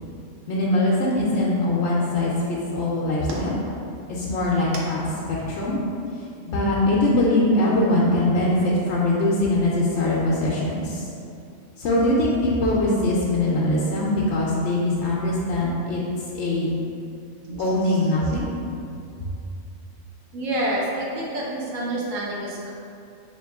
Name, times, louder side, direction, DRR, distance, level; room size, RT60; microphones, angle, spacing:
voice 1, 0.5-3.6 4.1-5.0 5.5-5.8 6.5-11.1 11.8-16.0 16.3-16.7 17.6-18.5 19.2-19.3, left 1 dB, 70° left, -5 dB, 0.9 m, -22 dB
voice 2, 20.3-22.7, right 1 dB, 90° right, -5 dB, 1.2 m, -28 dB
3.7 x 2.9 x 3.4 m, 2.5 s
omnidirectional pair, 1.3 m